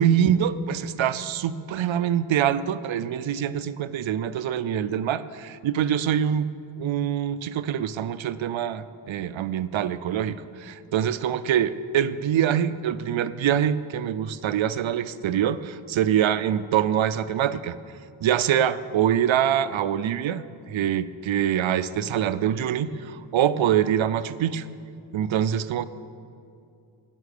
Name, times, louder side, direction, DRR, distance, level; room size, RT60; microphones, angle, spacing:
voice 1, 0.0-6.5 6.8-17.8 18.2-24.7 25.1-25.9, right 9 dB, 75° right, 15 dB, 0.6 m, -24 dB
11.0 x 9.2 x 6.6 m, 2.5 s
cardioid pair, 40°, 47 cm